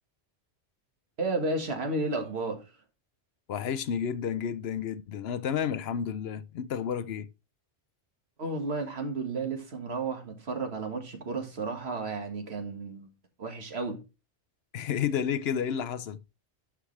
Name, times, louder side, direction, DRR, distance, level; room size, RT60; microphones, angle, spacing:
voice 1, 1.2-2.6 8.4-13.1 13.4-14.0, right 3 dB, 65° right, 1.8 m, -32 dB
voice 2, 3.5-7.3 14.7-16.2, left 8 dB, 70° left, 0.8 m, -31 dB
12.0 x 4.9 x 3.2 m
omnidirectional pair, 1.2 m